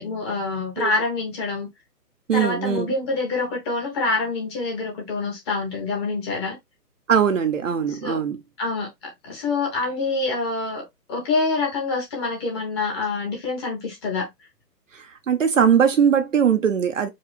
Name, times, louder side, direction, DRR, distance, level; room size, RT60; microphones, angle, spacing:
voice 1, 0.0-1.7 2.3-6.6 7.9-8.2 8.6-14.3, left 3 dB, 15° left, 1.2 m, -26 dB
voice 2, 2.3-2.9 7.1-8.4 14.9-17.1, right 7 dB, 50° right, 0.8 m, -20 dB
4.7 x 2.3 x 4.1 m
figure-of-eight pair, 145°, 49 cm